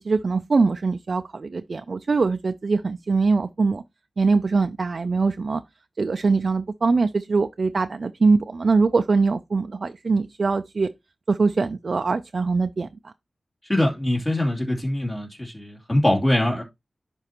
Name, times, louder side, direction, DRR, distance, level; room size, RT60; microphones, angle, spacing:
voice 1, 0.0-3.8 4.2-5.6 6.0-10.9 11.3-13.1, right 4 dB, 65° right, 0.4 m, -22 dB
voice 2, 13.7-16.6, left 1 dB, 25° left, 2.8 m, -23 dB
10.5 x 4.4 x 2.9 m
wide cardioid pair, 65°, 0 cm